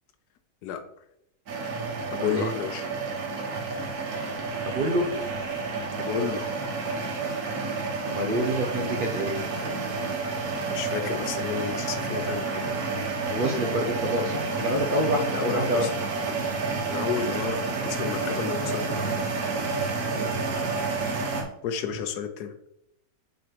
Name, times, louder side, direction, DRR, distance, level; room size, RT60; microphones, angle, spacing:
voice 1, 0.6-1.0 2.1-2.9 6.0-6.5 10.7-12.7 15.4-15.9 16.8-19.5 21.0-21.2 21.6-22.5, left 8 dB, 90° left, 8 dB, 1.3 m, -32 dB
sound 1, 1.5-21.4, right 4 dB, 70° right, 1.6 m, -30 dB
voice 2, 4.7-5.1 8.0-9.3 13.3-15.9 16.3-16.6 20.2-20.4, equal, 50° right, 2 dB, 0.6 m, -27 dB
6.9 x 3.1 x 4.7 m, 0.77 s
omnidirectional pair, 1.7 m